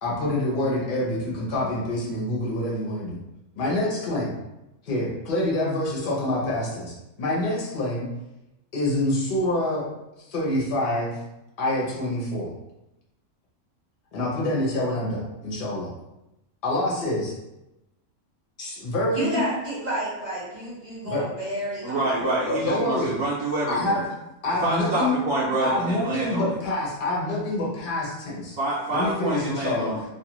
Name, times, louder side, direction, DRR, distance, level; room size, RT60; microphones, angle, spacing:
voice 1, 0.0-3.2 3.6-4.4 4.8-8.1 8.7-9.9 10.3-11.2 11.6-12.5 14.1-15.9 16.6-17.3 18.6-19.4 21.0-21.2 22.2-23.1 23.7-24.1 24.4-25.2 25.6-28.6 28.9-29.9, left 1 dB, 45° left, -4 dB, 0.8 m, -26 dB
voice 2, 19.1-22.1, right 1 dB, 35° right, -7 dB, 0.9 m, -30 dB
voice 3, 21.8-24.0 24.6-26.6 28.6-30.0, right 2 dB, 70° right, -6 dB, 1.0 m, -27 dB
2.5 x 2.4 x 2.9 m, 0.94 s
omnidirectional pair, 1.5 m